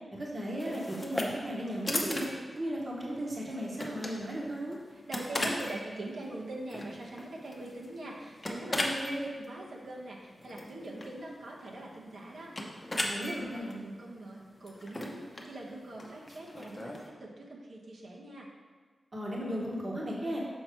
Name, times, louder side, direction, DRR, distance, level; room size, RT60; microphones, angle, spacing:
voice 1, 0.1-2.3 2.6-4.8 8.7-9.3 13.0-13.8 19.1-20.4, equal, 30° right, -3 dB, 1.2 m, -35 dB
sound 1, 0.6-17.1, left 1 dB, 20° left, 0.8 m, -39 dB
voice 2, 4.9-9.0 9.4-18.5, right 1 dB, 75° right, -3 dB, 1.2 m, -43 dB
6.3 x 5.7 x 4.5 m, 1.4 s
wide cardioid pair, 170°, 0 cm